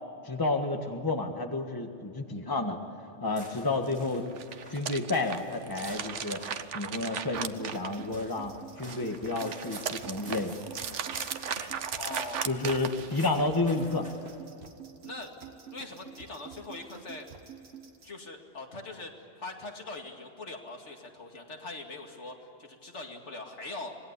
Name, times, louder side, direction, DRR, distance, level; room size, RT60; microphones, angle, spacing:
voice 1, 0.2-2.8 3.2-4.3 4.7-6.4 6.7-10.5 12.4-14.1, left 2 dB, 20° left, 4 dB, 1.6 m, -30 dB
sound 1, 3.2-14.4, right 1 dB, 25° right, 5.2 m, -51 dB
sound 2, 4.3-8.4 8.8-13.4, right 7 dB, 75° right, 1.2 m, -37 dB
sound 3, 7.3-18.1, right 6 dB, 60° right, 1.6 m, -48 dB
voice 2, 12.0-12.5 15.0-15.3 15.7-17.3 18.0-24.0, left 2 dB, 70° left, 2 dB, 2.6 m, -42 dB
26.0 x 20.0 x 8.3 m, 2.9 s
omnidirectional pair, 1.2 m